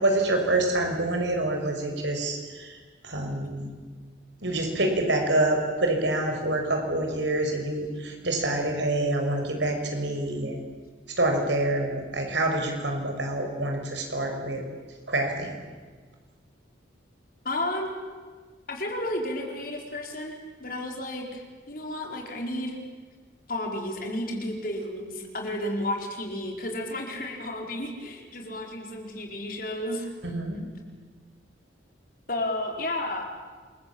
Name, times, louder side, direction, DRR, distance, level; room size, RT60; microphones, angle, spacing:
voice 1, 0.0-2.8 3.0-3.7 4.4-10.6 11.2-14.6 15.1-15.6 30.2-30.6, right 2 dB, 70° right, 3 dB, 5.8 m, -26 dB
voice 2, 17.4-17.9 18.7-22.8 23.5-30.1 32.3-33.2, left 1 dB, 50° left, 2 dB, 4.5 m, -32 dB
28.0 x 22.5 x 8.7 m, 1.5 s
head